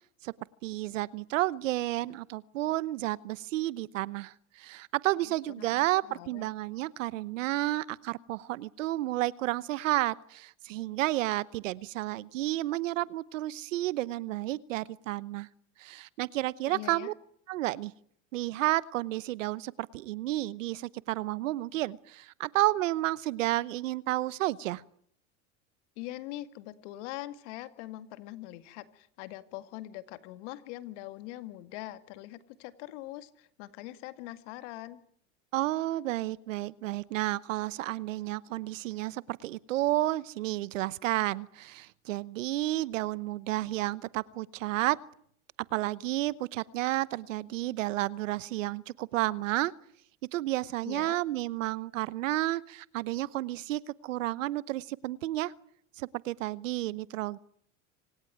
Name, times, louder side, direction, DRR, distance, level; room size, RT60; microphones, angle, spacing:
voice 1, 0.6-15.5 15.8-17.1 17.5-17.9 18.3-24.8 35.5-45.0 45.7-49.7 50.3-55.5 56.0-57.4, right 16 dB, 85° right, 20 dB, 1.0 m, -31 dB
voice 2, 5.2-6.5 16.7-17.1 26.0-35.0 50.9-51.2, left 16 dB, 70° left, 12 dB, 2.1 m, -43 dB
26.5 x 18.0 x 9.3 m, 0.66 s
supercardioid pair, 110°, 37 cm